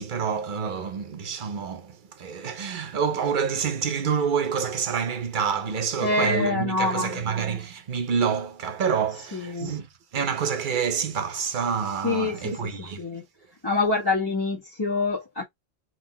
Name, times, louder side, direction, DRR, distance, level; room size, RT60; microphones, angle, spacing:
voice 1, 0.0-9.9 10.1-13.1, right 6 dB, 55° right, 0.8 m, -27 dB
voice 2, 6.0-7.2 9.3-9.8 12.0-13.2 13.6-15.4, left 3 dB, 25° left, 1.4 m, -26 dB
3.8 x 3.7 x 2.2 m
omnidirectional pair, 1.0 m